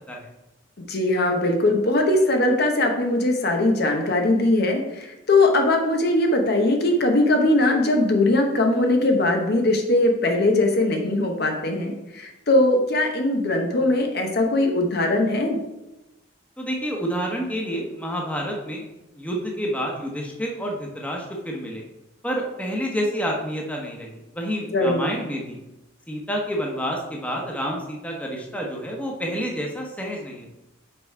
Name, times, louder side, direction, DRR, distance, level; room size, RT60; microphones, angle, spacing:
voice 1, 0.9-15.6 24.7-25.1, left 2 dB, 55° left, 3 dB, 1.0 m, -20 dB
voice 2, 16.6-18.9 19.1-21.8 22.2-25.6 26.1-30.5, equal, 5° left, 0 dB, 1.1 m, -29 dB
6.0 x 4.9 x 4.5 m, 0.95 s
head